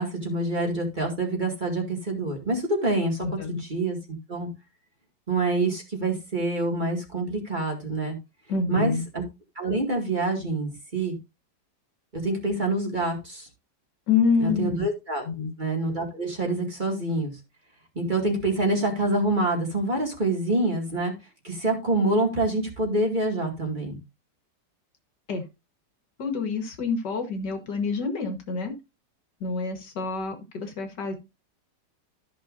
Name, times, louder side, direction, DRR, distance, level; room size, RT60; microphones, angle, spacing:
voice 1, 0.0-4.0 4.3-4.5 5.3-8.2 8.7-9.2 9.6-11.2 12.1-13.5 14.4-15.3 15.6-17.4 17.9-21.1 21.4-24.0, right 2 dB, 25° right, 1 dB, 2.3 m, -26 dB
voice 2, 3.2-3.6 8.5-9.0 14.1-14.9 15.3-15.5 25.3-25.4 26.2-28.7 29.4-31.2, left 5 dB, 70° left, 6 dB, 2.0 m, -27 dB
13.5 x 6.2 x 2.6 m, 0.25 s
omnidirectional pair, 1.9 m